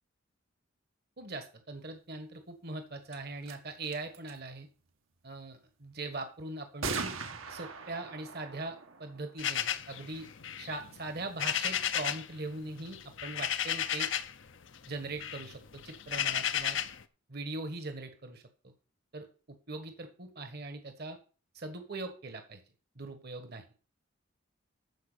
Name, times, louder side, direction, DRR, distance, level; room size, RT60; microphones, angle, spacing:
voice 1, 1.2-4.7 5.2-7.1 7.5-10.3 10.6-14.1 14.9-16.8 17.3-18.7 19.1-19.3 19.7-21.2 21.5-22.6 22.9-23.6, right 2 dB, 50° right, 7 dB, 1.4 m, -41 dB
sound 1, 3.1-3.2 3.4-3.5 3.8-4.4 6.8-10.2, right 4 dB, 80° right, 1.7 m, -40 dB
sound 2, 9.4-12.3 12.6-14.4 14.8-17.0, left 9 dB, 65° left, 0.7 m, -33 dB
13.5 x 4.9 x 6.7 m, 0.38 s
head